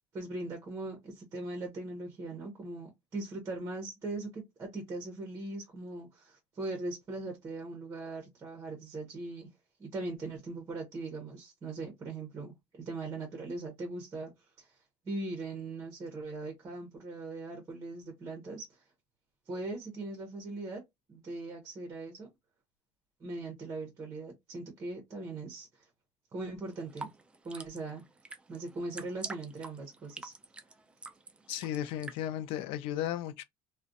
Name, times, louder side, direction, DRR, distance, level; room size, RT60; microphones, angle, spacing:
voice 1, 0.1-9.5 9.8-14.3 14.6-18.8 19.5-20.8 21.1-22.3 23.2-25.9 26.3-27.1 27.4-28.1 28.5-30.3, right 2 dB, 30° right, 0.8 m, -40 dB
sound 1, 26.7-32.2, right 3 dB, 10° right, 0.3 m, -46 dB
voice 2, 31.5-33.4, left 11 dB, 75° left, 0.4 m, -35 dB
2.4 x 2.1 x 2.5 m
cardioid pair, 135°, 9 cm